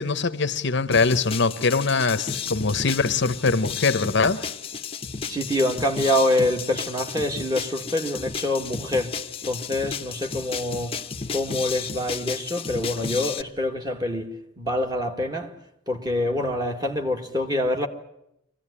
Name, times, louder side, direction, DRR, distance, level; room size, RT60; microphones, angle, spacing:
voice 1, 0.0-4.5, left 4 dB, 55° left, 0.8 m, -22 dB
sound 1, 0.9-13.4, left 5 dB, 25° left, 0.8 m, -33 dB
voice 2, 5.2-9.2 9.4-11.0 11.3-15.5 15.9-17.9, left 1 dB, 20° right, 1.8 m, -26 dB
24.0 x 16.0 x 9.8 m
head